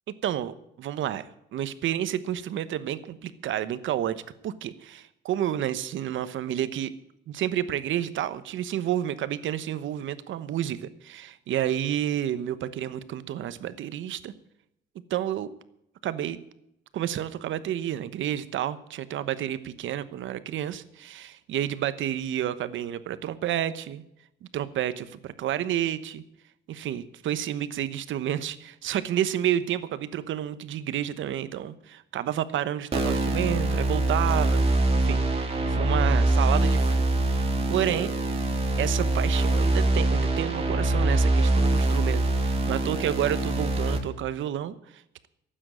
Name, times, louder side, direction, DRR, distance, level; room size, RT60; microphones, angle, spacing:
voice 1, 0.2-1.2 1.5-6.9 7.3-14.3 15.1-15.5 16.0-16.4 16.9-24.0 24.4-26.2 26.7-34.6 34.9-38.1 38.8-45.3, right 11 dB, 75° right, 14 dB, 1.1 m, -30 dB
sound 1, 32.9-44.0, right 2 dB, 30° right, 3.3 m, -24 dB
12.5 x 8.9 x 8.7 m, 0.80 s
cardioid pair, 90°, 20 cm